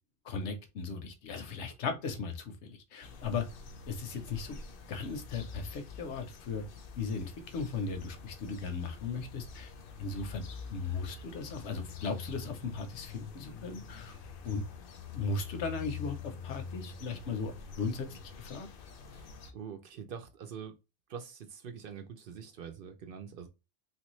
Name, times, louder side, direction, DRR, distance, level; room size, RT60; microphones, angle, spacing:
voice 1, 0.2-3.4 3.9-4.6 4.9-6.6 7.0-9.7 10.0-10.4 10.7-14.1 14.4-14.6 15.1-17.5 17.8-18.7, left 4 dB, 85° left, 1.0 m, -37 dB
sound 1, 3.0-19.5, left 6 dB, 60° left, 0.7 m, -46 dB
voice 2, 19.1-20.8 21.1-23.5, right 7 dB, 60° right, 0.7 m, -45 dB
3.0 x 2.6 x 3.0 m
omnidirectional pair, 1.2 m